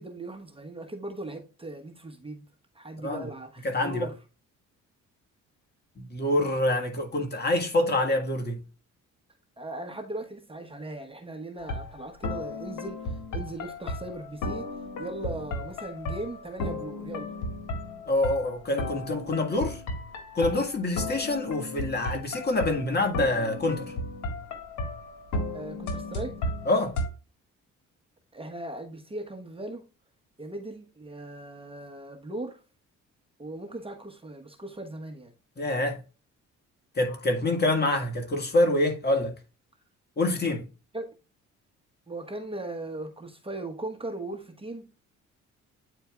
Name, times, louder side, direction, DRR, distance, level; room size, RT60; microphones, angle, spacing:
voice 1, 0.0-2.5 2.7-4.1 9.6-14.7 15.0-17.3 25.5-26.5 28.3-29.8 30.4-32.6 33.4-35.3 40.9-41.1 42.1-44.8, right 2 dB, 20° right, 1.1 m, -38 dB
voice 2, 3.6-4.1 6.0-8.6 18.1-19.8 20.3-23.9 26.6-27.0 35.6-36.0 36.9-39.3 40.2-40.7, left 2 dB, 35° left, 1.7 m, -26 dB
sound 1, 11.6-27.1, left 2 dB, 80° left, 1.7 m, -35 dB
9.2 x 4.5 x 2.3 m
cardioid pair, 90°, 30 cm